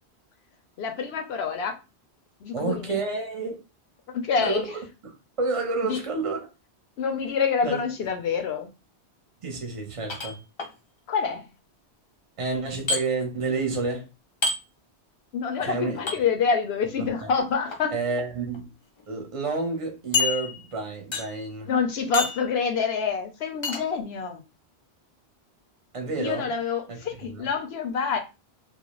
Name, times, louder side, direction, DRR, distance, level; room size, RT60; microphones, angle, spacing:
voice 1, 0.8-1.7 2.4-3.0 4.1-4.6 5.8-6.0 7.0-8.7 11.1-11.5 15.3-17.9 21.7-24.4 26.2-28.2, left 5 dB, 75° left, 0.8 m, -27 dB
voice 2, 2.5-3.6 4.4-6.5 7.6-7.8 9.4-10.4 12.4-14.1 15.6-16.0 17.0-17.3 17.9-18.7 19.1-21.7 25.9-26.5 26.9-27.5, right 4 dB, 35° right, 0.7 m, -30 dB
sound 1, 10.1-10.7 12.9-13.0 14.4-14.6 16.1-16.2 17.5-17.8 18.5-18.6 19.0-19.1 20.1-20.8 21.1-21.5 22.1-22.5 23.6-23.8, left 4 dB, 45° left, 0.4 m, -27 dB
2.4 x 2.1 x 2.9 m
omnidirectional pair, 1.1 m